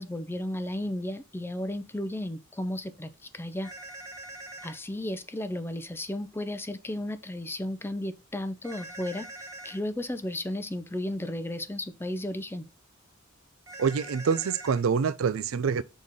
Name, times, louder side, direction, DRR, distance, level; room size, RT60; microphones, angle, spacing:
voice 1, 0.0-3.7 4.6-12.6, left 1 dB, 10° left, 0.5 m, -34 dB
sound 1, 3.6-4.8 8.6-9.8 13.7-14.8, right 2 dB, 15° right, 1.2 m, -43 dB
voice 2, 13.8-15.8, right 6 dB, 75° right, 0.4 m, -26 dB
6.6 x 4.1 x 3.6 m
head